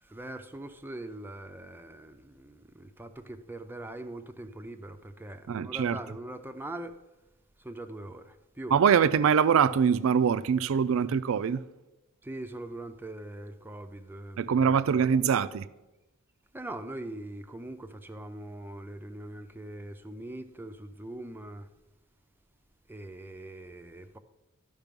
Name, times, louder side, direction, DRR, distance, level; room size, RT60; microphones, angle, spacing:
voice 1, 0.0-7.0 7.6-8.8 12.2-15.0 16.5-21.7 22.9-24.2, right 1 dB, 10° right, 0.4 m, -42 dB
voice 2, 5.5-6.0 8.7-11.6 14.4-15.7, right 7 dB, 70° right, 0.4 m, -23 dB
12.0 x 5.4 x 5.2 m
head